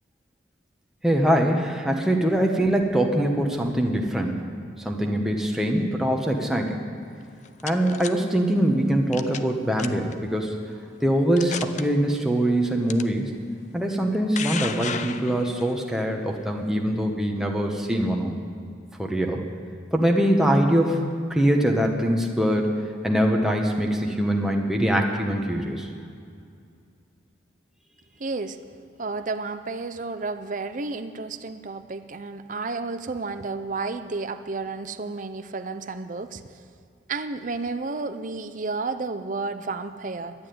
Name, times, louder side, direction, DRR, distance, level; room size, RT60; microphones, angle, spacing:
voice 1, 1.0-4.4 4.8-6.8 7.6-10.6 11.0-13.3 13.7-18.4 19.0-19.4 19.9-21.0 21.3-22.7 23.0-25.9, right 1 dB, 5° right, 1 dB, 1.1 m, -23 dB
sound 1, 7.2-8.1 9.1-9.5 9.8-10.1 10.8-10.9 11.4-11.8 12.9-13.0 13.9-15.7, left 7 dB, 40° left, 0.5 m, -33 dB
voice 2, 28.2-28.6 29.0-36.4 37.1-40.3, right 3 dB, 45° right, 10 dB, 0.6 m, -31 dB
12.0 x 8.8 x 9.3 m, 2.4 s
head